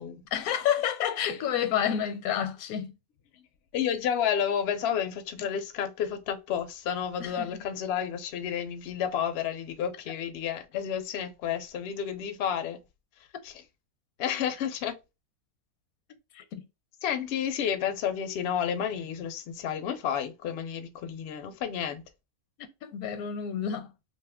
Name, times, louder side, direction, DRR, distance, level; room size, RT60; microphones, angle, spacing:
voice 1, 0.3-2.9 5.4-5.5 7.2-7.6 16.3-16.7 22.6-23.9, left 9 dB, 85° left, 1.0 m, -30 dB
voice 2, 3.7-12.8 13.4-13.5 14.2-15.0 17.0-22.0, left 8 dB, 65° left, 0.6 m, -31 dB
2.6 x 2.4 x 3.4 m
omnidirectional pair, 1.5 m